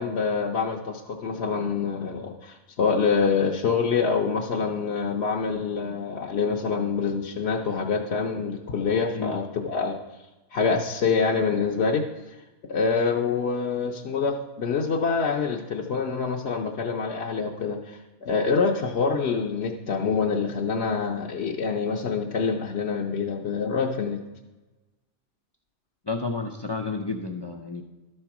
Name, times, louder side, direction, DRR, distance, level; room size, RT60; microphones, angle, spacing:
voice 1, 0.0-10.0 10.5-12.0 12.7-24.2, left 5 dB, 60° left, 0 dB, 0.9 m, -26 dB
voice 2, 26.0-27.8, left 3 dB, 40° left, 4 dB, 0.3 m, -31 dB
12.0 x 4.4 x 5.9 m, 1.1 s
omnidirectional pair, 1.3 m